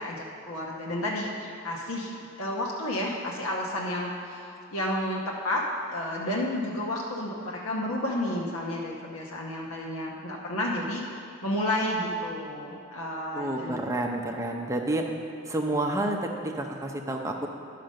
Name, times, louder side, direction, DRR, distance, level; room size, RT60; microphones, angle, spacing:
voice 1, 0.0-2.1 2.4-5.6 5.9-13.8, left 1 dB, 80° left, -2 dB, 1.0 m, -31 dB
voice 2, 13.3-15.1 15.5-17.5, right 1 dB, 15° right, 2 dB, 0.6 m, -29 dB
10.5 x 5.8 x 6.4 m, 2.7 s
head